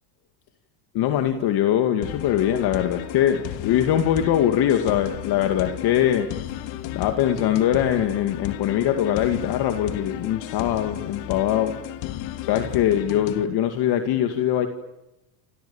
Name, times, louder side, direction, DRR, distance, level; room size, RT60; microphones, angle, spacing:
voice 1, 0.9-6.3 6.9-11.7 12.4-14.7, left 10 dB, 50° left, 7 dB, 2.5 m, -22 dB
sound 1, 2.0-13.4, left 13 dB, 65° left, 2.9 m, -34 dB
28.5 x 28.5 x 7.3 m, 0.95 s
supercardioid pair, 140°, 49 cm